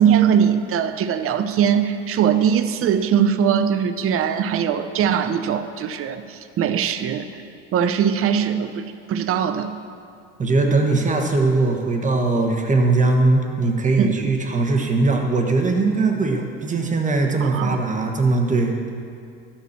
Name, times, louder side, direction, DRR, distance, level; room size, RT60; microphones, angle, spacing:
voice 1, 0.0-7.3 7.7-9.7 14.0-14.3 17.4-17.8, right 8 dB, 40° right, 10 dB, 0.7 m, -21 dB
voice 2, 10.4-18.7, right 3 dB, 20° right, 2 dB, 1.4 m, -20 dB
13.0 x 4.5 x 7.3 m, 2.4 s
hypercardioid pair, 80°, 36 cm